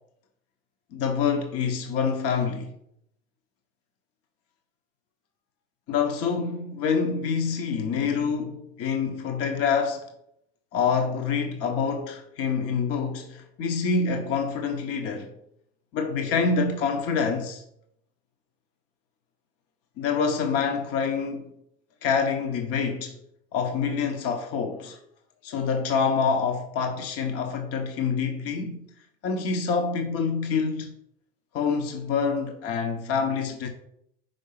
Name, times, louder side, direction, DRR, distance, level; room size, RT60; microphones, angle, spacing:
voice 1, 0.9-2.7 5.9-10.0 10.7-15.3 15.9-17.6 20.0-21.5 22.0-23.2 23.5-25.0 25.4-28.8 29.2-30.9 31.5-33.7, left 5 dB, 50° left, 1.1 m, -26 dB
5.4 x 4.6 x 5.7 m
hypercardioid pair, 95°, 30 cm